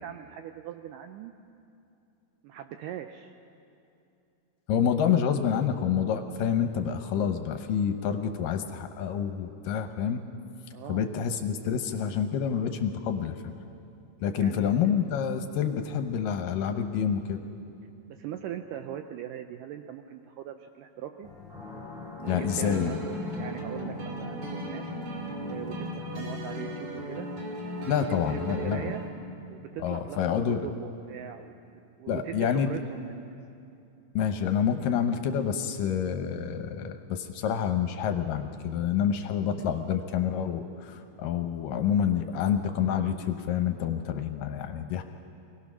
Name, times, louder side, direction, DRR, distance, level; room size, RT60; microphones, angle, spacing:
voice 1, 0.0-1.3 2.4-3.4 10.7-11.2 14.4-15.2 18.1-21.3 22.2-24.9 25.4-27.3 27.8-29.0 29.5-31.5 32.0-33.4, right 10 dB, 80° right, 7 dB, 1.9 m, -40 dB
voice 2, 4.7-10.2 10.9-13.3 14.2-17.4 22.3-22.9 27.9-28.9 29.8-30.7 32.1-32.8 34.2-45.0, left 8 dB, 75° left, 7 dB, 2.3 m, -28 dB
sound 1, 21.2-27.7, left 6 dB, 15° left, 3.1 m, -42 dB
sound 2, 21.2-26.7, left 3 dB, ahead, 3.0 m, -46 dB
sound 3, 22.2-29.1, right 1 dB, 55° right, 3.2 m, -37 dB
25.0 x 18.0 x 6.2 m, 2.7 s
omnidirectional pair, 4.4 m